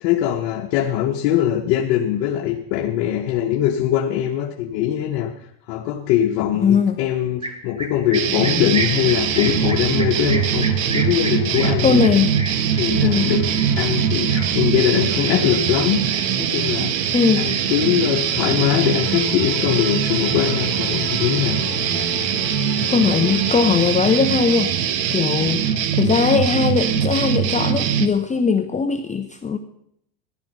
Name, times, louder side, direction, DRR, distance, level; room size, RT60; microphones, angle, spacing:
voice 1, 0.0-12.0 12.8-13.5 13.8-16.0 16.4-17.0 17.4-21.6, left 11 dB, 60° left, 1 dB, 1.4 m, -21 dB
voice 2, 6.6-7.0 11.8-12.4 13.0-13.3 17.1-17.6 22.9-29.6, left 5 dB, 15° left, 7 dB, 0.7 m, -19 dB
sound 1, 7.4-16.8 17.1-17.8 18.2-19.1 19.4-20.8, right 2 dB, 10° right, 1.3 m, -34 dB
sound 2, 8.1-28.1, right 8 dB, 90° right, 1.3 m, -22 dB
sound 3, 8.2-23.6, left 7 dB, 35° left, 3.5 m, -36 dB
14.0 x 11.5 x 5.4 m, 0.72 s
supercardioid pair, 110°, 50 cm